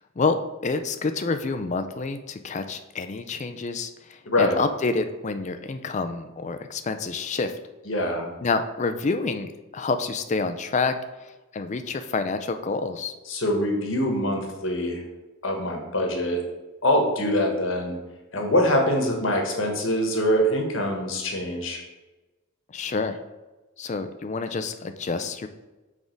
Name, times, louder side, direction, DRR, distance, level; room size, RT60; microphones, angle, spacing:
voice 1, 0.2-7.5 8.4-10.9 11.2-13.1 22.7-23.2 23.8-25.5, left 4 dB, 35° left, 8 dB, 0.4 m, -28 dB
voice 2, 4.3-4.6 7.9-8.3 13.3-15.0 15.4-16.4 16.8-18.0 18.3-21.8, left 1 dB, 65° left, 2 dB, 1.3 m, -24 dB
6.2 x 3.6 x 5.2 m, 1.1 s
head